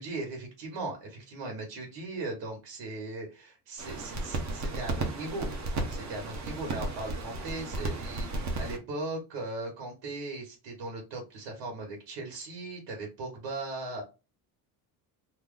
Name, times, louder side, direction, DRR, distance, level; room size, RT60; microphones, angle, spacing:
voice 1, 0.0-5.5 5.9-14.0, right 2 dB, 90° right, 0 dB, 1.4 m, -38 dB
sound 1, 3.8-8.8, right 2 dB, 40° right, 0.8 m, -34 dB
2.9 x 2.4 x 3.6 m, 0.29 s
cardioid pair, 160°, 42 cm